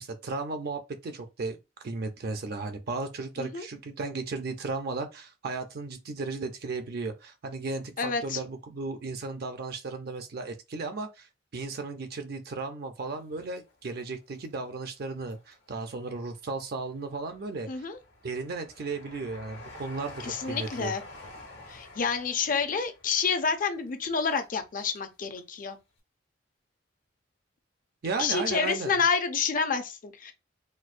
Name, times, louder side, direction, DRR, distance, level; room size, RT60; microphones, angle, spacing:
voice 1, 0.0-1.6 1.8-17.9 18.2-20.9 28.0-29.0, right 3 dB, 55° right, 0.5 m, -35 dB
voice 2, 8.0-8.4 17.7-18.0 20.2-21.0 21.7-25.8 28.2-30.3, left 5 dB, 50° left, 0.5 m, -28 dB
Train, 13.2-14.4 14.9-15.8 16.3-25.1 25.4-25.5, left 2 dB, 75° left, 1.2 m, -49 dB
4.3 x 2.1 x 2.4 m
head